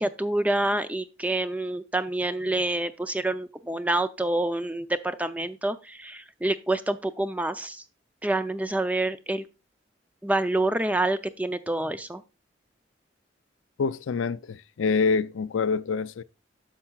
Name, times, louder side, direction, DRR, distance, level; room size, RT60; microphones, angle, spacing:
voice 1, 0.0-7.8 8.2-9.5 10.2-12.2, right 2 dB, 10° right, 0.5 m, -27 dB
voice 2, 13.8-16.2, left 5 dB, 85° left, 0.4 m, -26 dB
10.0 x 6.8 x 2.3 m
head